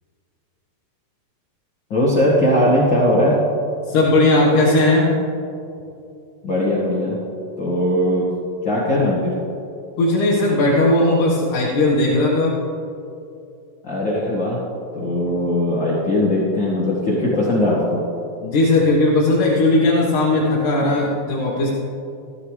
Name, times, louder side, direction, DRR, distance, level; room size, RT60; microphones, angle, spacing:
voice 1, 1.9-3.4 6.4-7.2 7.6-8.3 8.6-9.3 13.8-14.6 14.9-18.0, left 1 dB, 45° left, -7 dB, 1.8 m, -19 dB
voice 2, 3.9-5.1 10.0-12.5 18.4-21.7, left 2 dB, 60° left, -6 dB, 2.6 m, -17 dB
16.5 x 12.5 x 3.3 m, 2.7 s
omnidirectional pair, 4.7 m